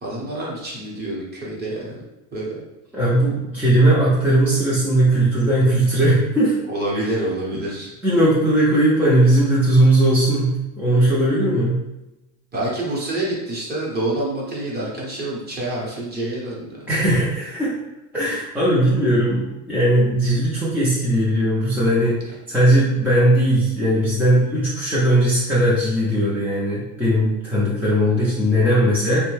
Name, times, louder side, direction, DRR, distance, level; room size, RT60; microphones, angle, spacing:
voice 1, 0.0-2.0 2.3-2.6 6.7-7.9 12.5-16.9, right 1 dB, 25° right, -4 dB, 0.9 m, -27 dB
voice 2, 2.9-6.5 6.9-7.0 7.5-7.6 8.0-11.8 16.9-17.8 18.1-22.2 22.5-29.3, right 1 dB, 5° right, -9 dB, 0.5 m, -18 dB
3.2 x 2.2 x 3.1 m, 0.96 s
supercardioid pair, 135°, 42 cm